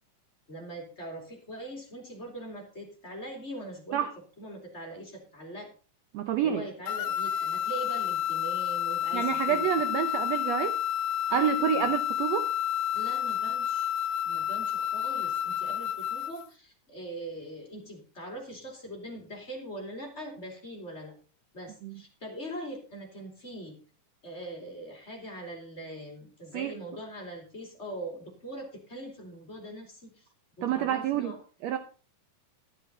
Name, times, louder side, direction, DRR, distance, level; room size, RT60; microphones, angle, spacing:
voice 1, 0.5-4.1 4.4-5.7 6.4-9.6 11.3-11.9 12.9-13.9 14.2-21.1 21.5-23.8 24.2-30.2 30.6-31.4, right 1 dB, 20° left, 2.7 m, -42 dB
voice 2, 6.1-6.7 9.1-10.8 11.3-12.5 21.8-21.9 26.5-26.7 30.6-31.3 31.6-31.8, right 9 dB, 75° right, 1.6 m, -28 dB
sound 1, 6.9-16.4, left 10 dB, 80° left, 2.0 m, -30 dB
11.5 x 11.0 x 4.0 m
omnidirectional pair, 3.6 m